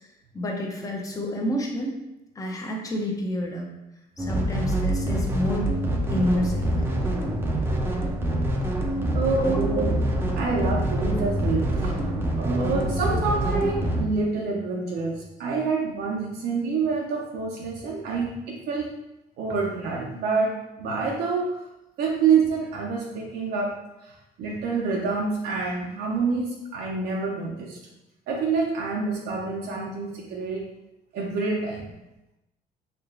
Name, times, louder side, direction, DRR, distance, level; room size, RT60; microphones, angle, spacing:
voice 1, 0.3-2.0 2.4-3.7 4.2-5.7 6.1-6.7 9.4-9.6 12.7-12.8, equal, 20° left, 0 dB, 0.7 m, -28 dB
sound 1, 4.2-14.0, right 1 dB, 15° right, 0.6 m, -25 dB
voice 2, 9.1-12.0 12.4-18.9 19.4-21.6 22.0-23.7 24.0-27.8 28.3-30.6 31.1-31.9, right 4 dB, 70° right, -2 dB, 0.6 m, -27 dB
4.5 x 3.0 x 2.6 m, 0.92 s
cardioid pair, 110°, 17 cm